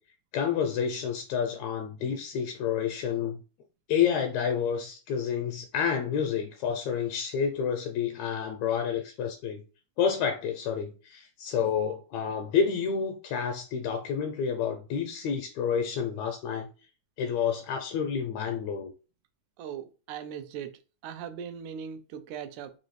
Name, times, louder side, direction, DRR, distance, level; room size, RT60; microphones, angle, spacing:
voice 1, 0.3-3.4 3.9-9.6 10.0-16.7 17.2-18.9, left 7 dB, 80° left, 1.7 m, -29 dB
voice 2, 19.6-20.8 21.0-22.7, right 8 dB, 85° right, 1.9 m, -39 dB
4.8 x 2.6 x 3.0 m
omnidirectional pair, 3.4 m